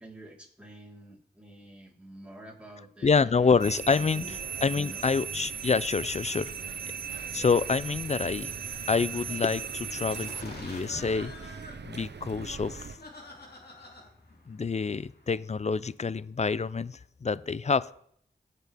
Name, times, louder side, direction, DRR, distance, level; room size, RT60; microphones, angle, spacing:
voice 1, 0.0-3.3 3.9-4.4 4.8-5.0, right 1 dB, 5° right, -4 dB, 3.9 m, -48 dB
voice 2, 3.0-6.5 7.1-8.5 8.9-11.3 11.8-13.0 14.5-18.0, left 5 dB, 40° left, 18 dB, 0.5 m, -27 dB
sound 1, 3.4-13.0, right 5 dB, 75° right, 0.8 m, -44 dB
sound 2, 3.6-10.4, right 7 dB, 60° right, 0.4 m, -38 dB
sound 3, 10.1-15.3, left 2 dB, 65° left, 2.5 m, -48 dB
17.0 x 6.8 x 3.5 m, 0.66 s
cardioid pair, 50°, 18 cm